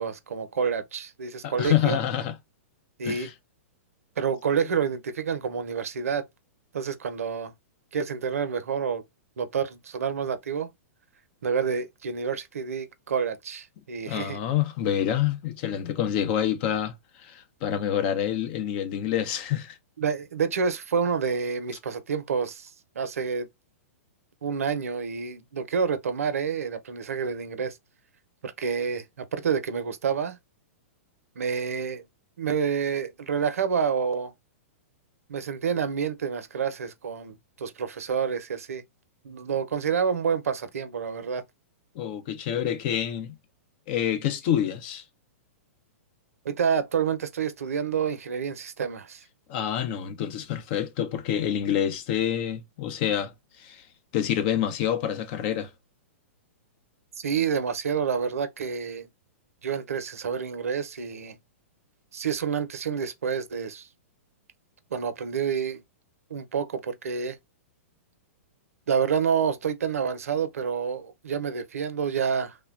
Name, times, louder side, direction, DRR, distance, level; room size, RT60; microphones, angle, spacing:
voice 1, 0.0-2.0 3.0-3.3 4.2-6.2 6.7-7.5 7.9-9.0 9.4-10.7 11.4-14.4 20.0-23.5 24.4-27.8 28.4-30.4 31.4-32.0 32.4-34.3 35.3-38.8 39.2-41.4 46.4-49.2 57.2-59.1 59.6-61.4 62.1-63.9 64.9-65.8 66.3-67.4 68.9-72.6, right 6 dB, 85° right, 0.6 m, -28 dB
voice 2, 1.4-2.3 3.0-3.3 14.1-19.8 41.9-43.3 43.9-45.0 49.5-53.9 54.1-55.7, left 10 dB, 45° left, 0.6 m, -27 dB
3.2 x 2.2 x 2.3 m
hypercardioid pair, 125°, 8 cm